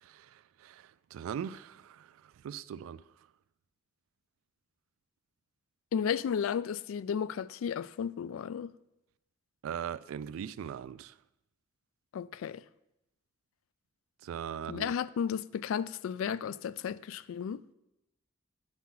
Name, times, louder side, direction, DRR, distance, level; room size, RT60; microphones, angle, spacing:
voice 1, 0.0-3.0 9.6-11.1 14.2-14.9, right 8 dB, 85° right, 0.3 m, -40 dB
voice 2, 5.9-8.7 12.1-12.6 14.7-17.6, left 7 dB, 80° left, 0.3 m, -33 dB
9.4 x 5.8 x 3.8 m
head